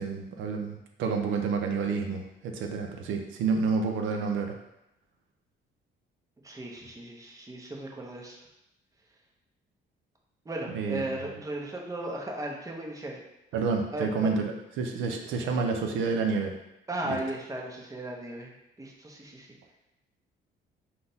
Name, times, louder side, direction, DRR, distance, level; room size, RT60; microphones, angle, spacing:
voice 1, 0.0-4.6 10.7-11.3 13.5-16.5 17.1-17.2, right 4 dB, 85° right, 3 dB, 0.5 m, -29 dB
voice 2, 6.4-8.4 10.5-13.2 13.9-14.3 16.9-18.5 18.8-19.5, right 1 dB, 15° right, -1 dB, 0.7 m, -36 dB
3.8 x 2.2 x 3.9 m, 0.89 s
cardioid pair, 90°, 20 cm